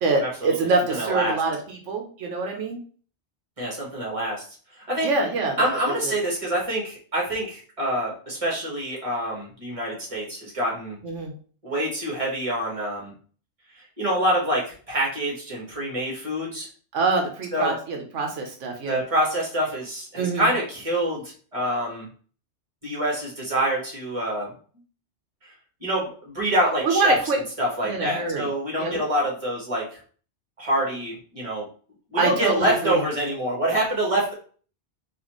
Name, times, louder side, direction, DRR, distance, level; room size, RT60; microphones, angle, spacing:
voice 1, 0.0-2.8 5.0-5.7 6.0-6.1 11.0-11.3 16.9-19.0 20.1-20.5 26.8-27.4 27.8-28.5 28.8-29.0 32.2-33.0, right 3 dB, 85° right, 2 dB, 1.1 m, -25 dB
voice 2, 1.0-1.4 3.6-4.4 4.9-5.1 5.6-11.0 11.6-13.1 14.0-16.7 17.5-17.7 18.8-21.2 21.5-22.1 22.8-24.5 25.4-25.5 25.8-27.2 27.6-29.8 30.6-31.6 32.1-34.3, right 1 dB, 30° right, -3 dB, 1.7 m, -26 dB
4.0 x 2.8 x 3.0 m, 0.42 s
omnidirectional pair, 1.2 m